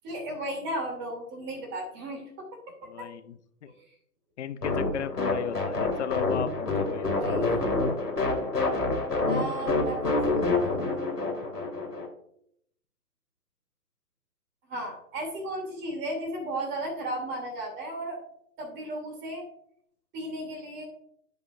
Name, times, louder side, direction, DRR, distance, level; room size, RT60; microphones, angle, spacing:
voice 1, 0.0-2.5 2.8-3.1 7.0-7.5 9.2-11.2 14.7-18.2 18.6-19.4 20.1-20.8, right 1 dB, 20° right, 0 dB, 3.0 m, -35 dB
voice 2, 2.8-3.3 3.6-3.7 4.4-7.4, left 9 dB, 45° left, 11 dB, 0.8 m, -35 dB
sound 1, 4.6-12.1, left 3 dB, 90° left, 2.6 m, -27 dB
14.5 x 5.5 x 2.6 m, 0.69 s
figure-of-eight pair, 130°, 47 cm